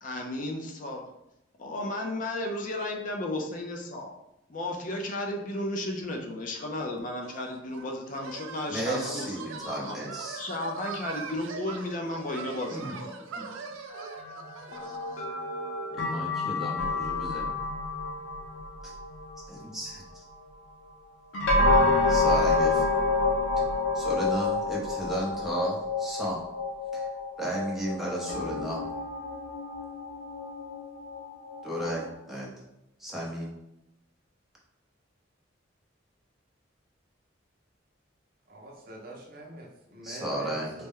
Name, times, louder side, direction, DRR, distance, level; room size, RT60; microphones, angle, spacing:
voice 1, 0.0-1.0 1.6-4.1 4.5-10.0 10.4-13.2, left 1 dB, 40° left, 2 dB, 0.4 m, -34 dB
sound 1, 7.2-15.3, right 4 dB, 90° right, 0.5 m, -41 dB
voice 2, 8.7-10.4 12.7-13.0 13.4-13.5 15.9-17.5 18.8-18.9 19.5-20.2 22.1-22.9 23.9-26.4 26.9-27.1 27.4-28.8 31.6-32.5 33.0-33.5 40.0-40.9, right 1 dB, ahead, -4 dB, 0.7 m, -34 dB
sound 2, 13.9-19.5 21.3-32.1, left 2 dB, 80° left, 0.8 m, -28 dB
voice 3, 38.5-40.9, right 1 dB, 45° right, 0 dB, 0.6 m, -45 dB
4.1 x 2.1 x 3.6 m, 0.87 s
head